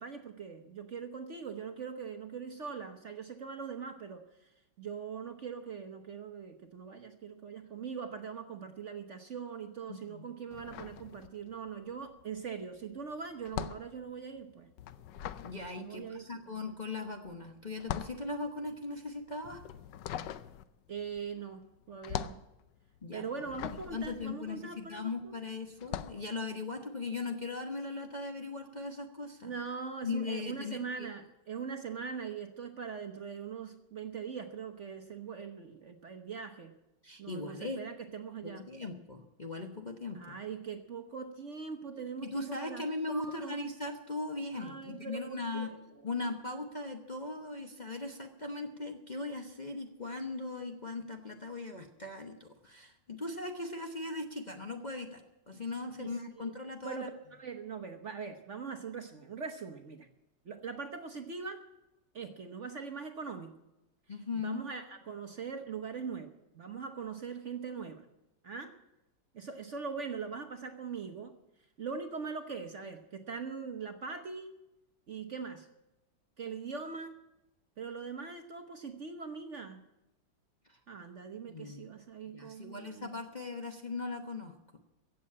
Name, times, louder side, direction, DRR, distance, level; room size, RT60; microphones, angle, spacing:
voice 1, 0.0-4.5 4.8-14.7 15.8-16.2 20.9-22.4 23.1-25.4 29.4-36.7 37.2-38.7 40.1-43.6 44.5-45.8 56.0-56.5 56.8-60.1 60.4-61.6 62.1-63.6 64.3-68.1 68.4-68.8 69.3-71.4 71.8-74.5 75.1-75.7 76.4-77.1 77.8-79.8 80.9-83.1, right 5 dB, 50° right, 6 dB, 1.1 m, -41 dB
voice 2, 9.9-10.3 15.4-19.6 23.0-23.3 23.7-29.5 30.0-31.1 37.0-37.8 38.4-40.4 42.2-45.7 46.0-57.1 64.1-64.6 80.7-80.8 81.5-81.8 82.3-84.8, left 3 dB, 30° left, 2 dB, 1.0 m, -39 dB
sound 1, 10.5-11.7 12.0-25.2 25.7-26.3, left 10 dB, 75° left, 1.3 m, -42 dB
16.0 x 7.6 x 8.6 m, 0.94 s
omnidirectional pair, 2.0 m